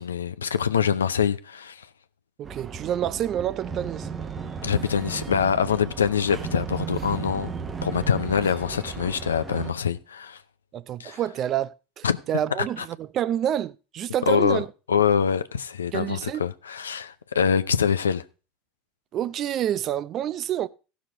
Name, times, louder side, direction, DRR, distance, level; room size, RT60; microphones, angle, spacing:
voice 1, 0.0-1.9 4.6-7.5 7.8-10.4 11.0-11.2 12.0-12.2 12.6-12.9 14.3-14.6 14.9-18.2, left 7 dB, 90° left, 0.5 m, -24 dB
sound 1, 2.4-9.7, right 6 dB, 30° right, 0.9 m, -35 dB
voice 2, 2.4-4.1 10.7-14.7 15.9-16.4 19.1-20.7, right 10 dB, 45° right, 0.5 m, -28 dB
15.5 x 6.3 x 3.8 m
hypercardioid pair, 80°, 0 cm